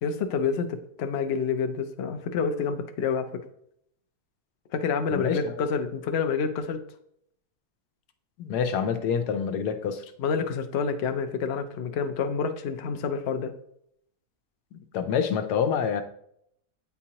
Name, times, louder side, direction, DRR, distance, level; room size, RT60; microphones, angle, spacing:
voice 1, 0.0-3.4 4.7-6.8 10.2-13.5, left 5 dB, 60° left, 7 dB, 0.7 m, -28 dB
voice 2, 5.1-5.6 8.4-10.1 14.7-16.0, left 7 dB, 85° left, 7 dB, 1.2 m, -27 dB
8.5 x 4.5 x 2.9 m, 0.72 s
omnidirectional pair, 1.7 m